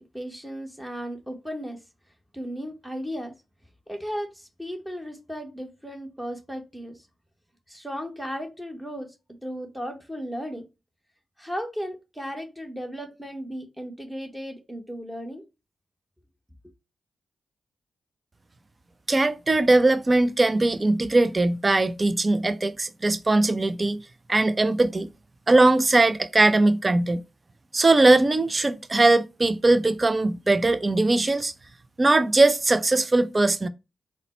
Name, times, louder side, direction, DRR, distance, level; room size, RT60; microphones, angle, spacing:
voice 1, 0.1-1.8 2.3-3.3 3.9-7.1 7.7-9.2 9.4-10.6 11.4-15.4, equal, 5° right, 1.2 m, -35 dB
voice 2, 19.1-24.0 24.3-25.1 25.5-27.2 27.7-31.5 32.0-33.7, right 2 dB, 35° right, 0.5 m, -20 dB
4.0 x 2.2 x 4.2 m
supercardioid pair, 45°, 0 cm